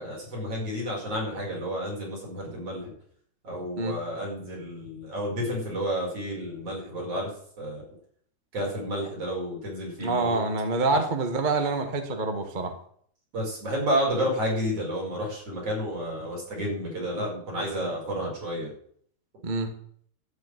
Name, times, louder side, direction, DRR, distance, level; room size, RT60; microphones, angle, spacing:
voice 1, 0.0-2.9 3.4-7.3 7.6-7.8 8.5-10.4 13.3-18.7, equal, 50° right, -2 dB, 6.2 m, -31 dB
voice 2, 10.0-12.7 19.4-19.7, right 3 dB, 35° right, 6 dB, 0.8 m, -26 dB
12.5 x 6.3 x 9.1 m, 0.62 s
omnidirectional pair, 3.4 m